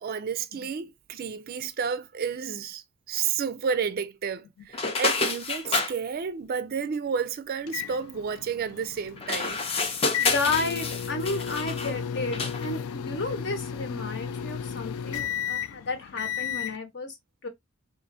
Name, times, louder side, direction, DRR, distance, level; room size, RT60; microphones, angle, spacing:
voice 1, 0.0-9.6, right 6 dB, 45° right, 0.4 m, -31 dB
sound 1, 4.7-5.9 9.2-12.0 12.3-12.7, left 4 dB, 30° left, 0.6 m, -28 dB
sound 2, 7.7-16.8, left 8 dB, 85° left, 0.3 m, -34 dB
voice 2, 10.2-17.2 17.4-17.5, left 3 dB, 55° left, 1.1 m, -32 dB
4.1 x 2.5 x 2.6 m
head